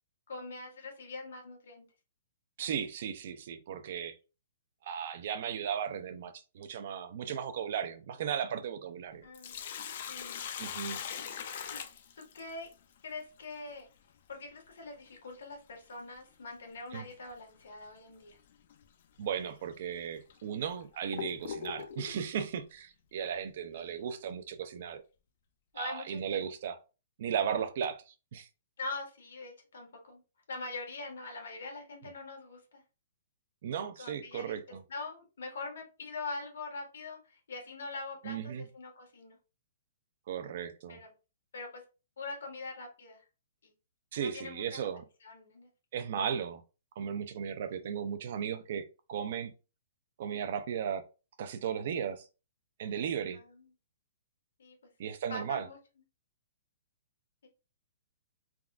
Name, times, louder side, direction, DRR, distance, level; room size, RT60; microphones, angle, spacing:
voice 1, 0.3-1.8 9.2-9.5 10.1-10.4 11.7-11.8 12.2-12.7 13.0-13.9 14.3-18.4 23.7-24.1 25.7-26.5 28.8-30.2 30.5-32.8 34.0-39.4 40.9-41.1 41.5-41.8 42.2-43.2 43.6-43.7 44.2-44.9 45.2-45.7 47.6-47.8 53.3-53.7 54.6-54.8 55.3-55.8 57.4-57.5, left 3 dB, 75° left, 1.4 m, -43 dB
voice 2, 2.6-4.2 4.8-9.3 10.6-11.0 16.9-17.0 19.2-25.0 25.8-26.8 27.2-28.5 33.6-34.8 38.2-38.6 40.3-41.0 44.1-45.0 45.9-46.6 47.0-49.5 50.2-51.0 51.4-52.2 52.8-53.4 55.0-55.6, right 8 dB, 40° right, 0.3 m, -36 dB
Sink (filling or washing), 9.1-12.7 15.1-15.2 17.1-17.3 17.8-17.9 18.7-18.8 19.5-19.6 20.3-22.2, left 8 dB, 40° left, 0.3 m, -41 dB
3.5 x 2.3 x 2.3 m
hypercardioid pair, 175°, 0 cm